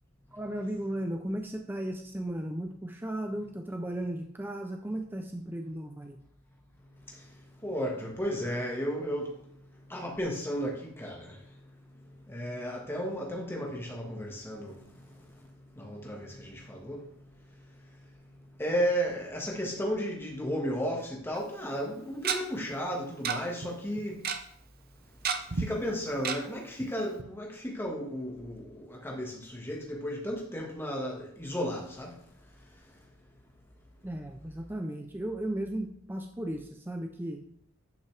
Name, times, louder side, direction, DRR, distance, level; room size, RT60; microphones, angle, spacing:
voice 1, 0.3-6.2 34.0-37.4, right 1 dB, 10° right, 0.5 m, -35 dB
voice 2, 7.0-24.2 25.5-32.2 32.6-33.0, equal, 10° left, 1.6 m, -35 dB
Tick-tock, 21.3-21.4 22.2-22.4 23.2-23.4 23.6-23.7 24.0-24.4 25.2-25.6 26.2-26.4 26.8-26.9 27.2-27.3, right 6 dB, 45° right, 0.7 m, -29 dB
10.5 x 5.6 x 3.3 m
head